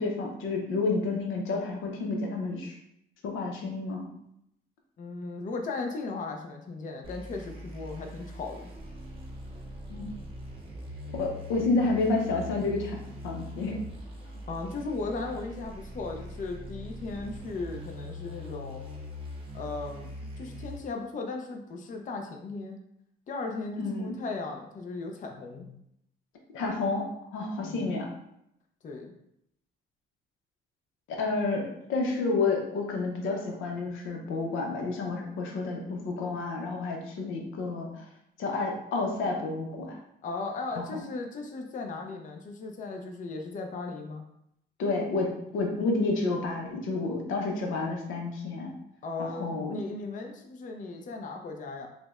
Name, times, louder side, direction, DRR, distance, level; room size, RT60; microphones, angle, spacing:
voice 1, 0.0-2.7 3.2-4.1 9.9-10.1 11.1-13.8 23.8-24.1 26.5-27.0 27.3-28.1 31.2-38.1 38.4-40.0 40.8-40.9 44.8-48.7 49.2-49.8, left 3 dB, 85° left, 1 dB, 0.6 m, -30 dB
voice 2, 5.0-8.7 14.5-18.8 19.5-22.8 23.3-25.8 27.6-27.9 28.8-29.1 40.2-44.3 49.0-51.9, left 3 dB, 40° left, 3 dB, 0.5 m, -37 dB
sound 1, 7.0-20.8, left 1 dB, 25° right, 0.7 m, -42 dB
4.8 x 2.1 x 2.4 m, 0.77 s
cardioid pair, 90°, 20 cm